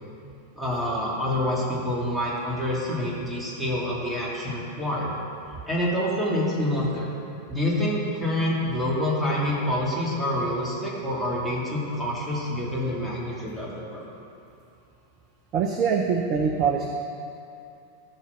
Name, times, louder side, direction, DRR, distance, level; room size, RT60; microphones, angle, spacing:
voice 1, 0.5-5.1 5.7-7.1 7.5-14.0, left 1 dB, 5° right, -6 dB, 2.6 m, -27 dB
voice 2, 15.5-16.9, right 6 dB, 35° right, 3 dB, 0.7 m, -23 dB
14.0 x 5.7 x 6.1 m, 2.7 s
figure-of-eight pair, 90°, 0 cm